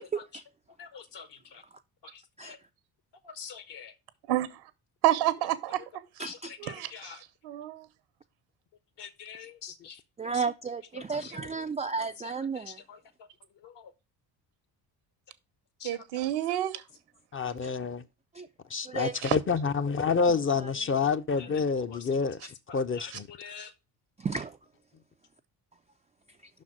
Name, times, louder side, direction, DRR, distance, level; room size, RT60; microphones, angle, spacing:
voice 1, 0.8-1.3 2.4-2.6 3.4-3.9 6.3-6.4 6.9-7.2 9.0-9.9 15.8-16.0 21.9-22.0 23.0-23.1 23.4-23.7, left 7 dB, 60° left, 1.3 m, -44 dB
voice 2, 4.3-4.6 5.0-5.8 6.6-7.2 7.4-7.9 15.8-16.8 19.2-19.3, right 14 dB, 80° right, 1.0 m, -28 dB
voice 3, 6.2-6.5 10.2-12.8 17.6-17.7 18.3-18.5 18.8-19.1 20.6-20.7 22.4-22.5 24.2-24.4, right 5 dB, 15° right, 0.3 m, -33 dB
voice 4, 17.3-18.0 18.7-22.4 22.7-23.3, left 5 dB, 25° left, 0.6 m, -28 dB
5.8 x 4.2 x 6.2 m
hypercardioid pair, 60°, 48 cm